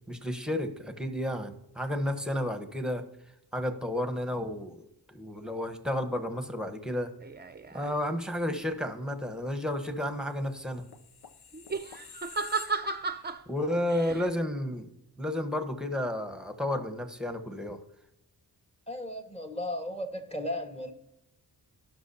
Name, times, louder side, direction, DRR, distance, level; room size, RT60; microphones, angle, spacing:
voice 1, 0.0-3.1 3.5-7.1 7.7-10.8 13.5-14.9 15.2-17.8, left 1 dB, ahead, 1.2 m, -32 dB
sound 1, 7.2-8.0 11.5-13.4 13.9-14.3, right 4 dB, 25° right, 0.7 m, -34 dB
sound 2, 10.4-13.3 13.7-13.9, left 7 dB, 65° left, 0.8 m, -49 dB
voice 2, 18.9-20.9, left 1 dB, 15° left, 1.6 m, -35 dB
17.5 x 6.0 x 2.8 m
cardioid pair, 60°, 41 cm